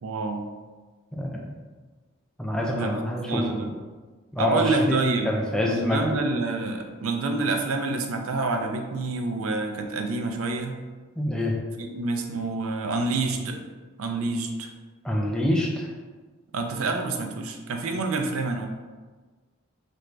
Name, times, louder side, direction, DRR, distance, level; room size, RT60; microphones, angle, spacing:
voice 1, 0.0-0.4 2.7-2.9 3.3-3.7 4.4-5.3 5.6-10.8 11.8-13.6 14.0-14.7 16.5-18.7, right 3 dB, 80° right, 4 dB, 0.4 m, -27 dB
voice 2, 1.1-1.5 2.4-3.7 4.3-5.0 5.2-6.2 11.2-11.6 15.0-15.9, left 1 dB, 5° left, -2 dB, 0.3 m, -26 dB
3.3 x 2.6 x 3.1 m, 1.3 s
head